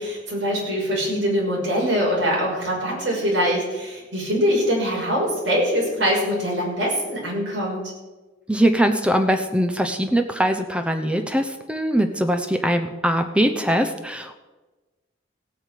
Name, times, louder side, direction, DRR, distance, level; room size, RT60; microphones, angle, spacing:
voice 1, 0.0-7.8, equal, 70° right, -3 dB, 6.2 m, -23 dB
voice 2, 8.5-14.4, equal, 5° right, 7 dB, 0.8 m, -22 dB
16.0 x 8.7 x 6.7 m, 1.2 s
head